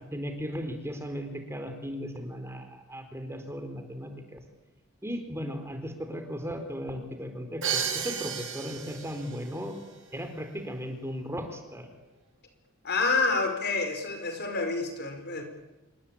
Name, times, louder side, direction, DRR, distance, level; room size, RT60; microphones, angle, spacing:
voice 1, 0.1-4.4 5.0-9.8 10.1-11.9, equal, 15° right, 6 dB, 4.2 m, -36 dB
Crash cymbal, 7.6-9.5, right 7 dB, 65° right, 7.2 m, -32 dB
voice 2, 12.8-15.4, left 3 dB, 55° left, 6 dB, 5.4 m, -28 dB
27.5 x 24.0 x 8.8 m, 1.1 s
head